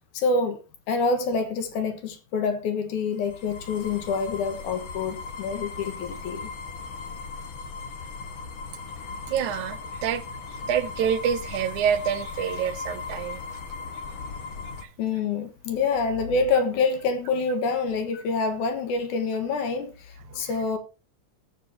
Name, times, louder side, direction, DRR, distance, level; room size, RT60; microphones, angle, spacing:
voice 1, 0.1-6.5 15.0-20.8, left 4 dB, 85° left, 2.9 m, -27 dB
sound 1, 3.1-14.8, left 4 dB, 50° left, 1.8 m, -37 dB
voice 2, 9.3-10.4 10.7-13.4 14.8-14.9 20.3-20.5, right 8 dB, 80° right, 2.2 m, -27 dB
18.0 x 7.4 x 2.8 m
omnidirectional pair, 3.4 m